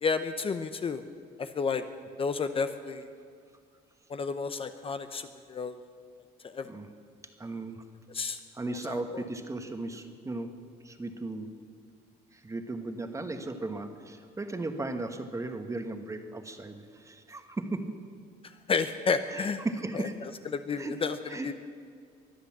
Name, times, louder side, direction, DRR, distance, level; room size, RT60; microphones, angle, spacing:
voice 1, 0.0-1.0 1.4-1.8 2.2-3.1 4.1-5.8 6.4-6.7 8.1-8.4 8.9-9.3 18.4-19.6 19.9-20.1 20.5-21.2 21.4-21.5, left 5 dB, 35° left, 9 dB, 0.7 m, -31 dB
voice 2, 7.4-7.8 8.5-10.5 10.8-11.5 12.3-18.0 19.3-20.2 20.8-21.0 21.3-21.5, right 2 dB, 20° right, 7 dB, 1.3 m, -36 dB
23.0 x 8.1 x 7.4 m, 2.1 s
cardioid pair, 110°, 17 cm